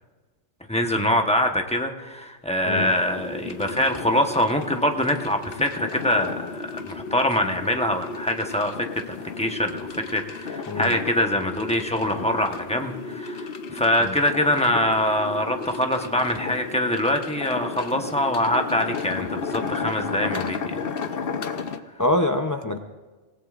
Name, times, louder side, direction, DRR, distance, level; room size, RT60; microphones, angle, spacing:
voice 1, 0.7-20.8, left 1 dB, 5° left, 4 dB, 1.0 m, -24 dB
sound 1, 2.8-21.8, left 5 dB, 50° left, 0.9 m, -34 dB
voice 2, 22.0-22.8, left 1 dB, 20° left, 5 dB, 0.5 m, -24 dB
26.0 x 17.0 x 2.5 m, 1.3 s
omnidirectional pair, 1.3 m